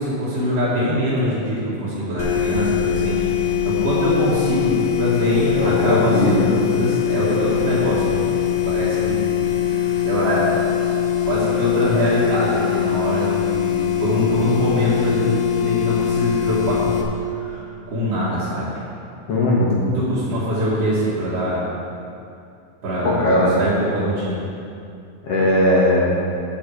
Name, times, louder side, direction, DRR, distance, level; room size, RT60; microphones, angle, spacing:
voice 1, 0.0-9.2 9.6-10.6 11.2-18.7 20.1-21.6 22.8-23.3 23.6-24.4, equal, 55° right, -10 dB, 2.9 m, -23 dB
sound 1, 2.2-17.0, left 10 dB, 90° left, 2.4 m, -22 dB
voice 2, 5.5-6.6 19.3-19.8 23.0-23.6 25.2-26.1, left 1 dB, 55° left, -4 dB, 2.4 m, -18 dB
9.9 x 9.5 x 5.0 m, 2.5 s
omnidirectional pair, 3.6 m